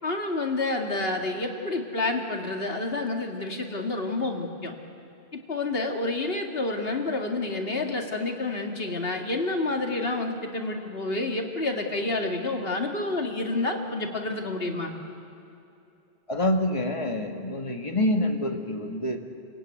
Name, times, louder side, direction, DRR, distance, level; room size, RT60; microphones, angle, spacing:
voice 1, 0.0-4.7 5.3-14.9, left 2 dB, 55° left, 3 dB, 2.4 m, -29 dB
voice 2, 16.3-19.2, left 1 dB, 30° left, 3 dB, 1.9 m, -26 dB
28.5 x 16.5 x 9.3 m, 2.7 s
omnidirectional pair, 1.2 m